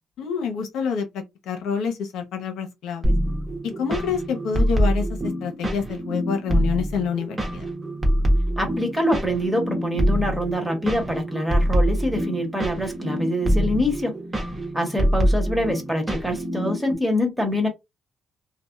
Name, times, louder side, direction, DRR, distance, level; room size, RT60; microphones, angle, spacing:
voice 1, 0.2-3.1 3.6-7.6, left 6 dB, 85° left, 0.8 m, -27 dB
sound 1, 3.0-16.9, equal, 20° right, 1.0 m, -25 dB
voice 2, 8.6-14.2 14.7-17.7, equal, 5° right, 1.3 m, -25 dB
2.7 x 2.1 x 2.3 m
cardioid pair, 90°, 0 cm